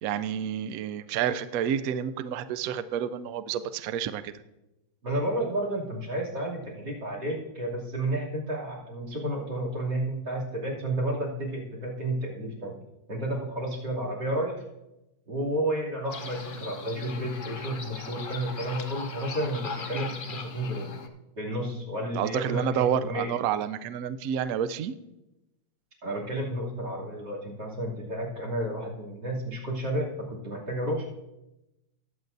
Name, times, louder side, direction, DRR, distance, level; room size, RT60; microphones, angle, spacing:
voice 1, 0.0-4.3 22.1-24.9, right 9 dB, 85° right, 12 dB, 0.7 m, -29 dB
voice 2, 5.0-12.8 13.1-14.6 15.3-21.0 21.4-23.3 26.0-31.1, right 1 dB, 60° right, -2 dB, 3.4 m, -31 dB
sound 1, 16.1-21.1, left 4 dB, 75° left, 0.4 m, -39 dB
20.0 x 8.1 x 2.6 m, 0.94 s
omnidirectional pair, 2.1 m